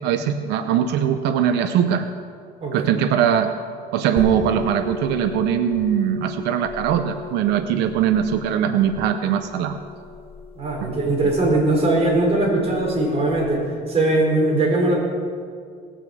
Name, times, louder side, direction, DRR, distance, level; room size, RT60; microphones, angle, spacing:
voice 1, 0.0-2.1 2.7-3.5 3.9-9.8 10.8-10.9, right 9 dB, 85° right, 9 dB, 0.7 m, -21 dB
sound 1, 4.2-13.5, left 4 dB, 15° left, 3.4 m, -36 dB
voice 2, 10.5-13.6 13.9-14.9, right 2 dB, 35° right, -1 dB, 4.4 m, -20 dB
19.0 x 6.4 x 7.8 m, 2.1 s
cardioid pair, 110°, 17 cm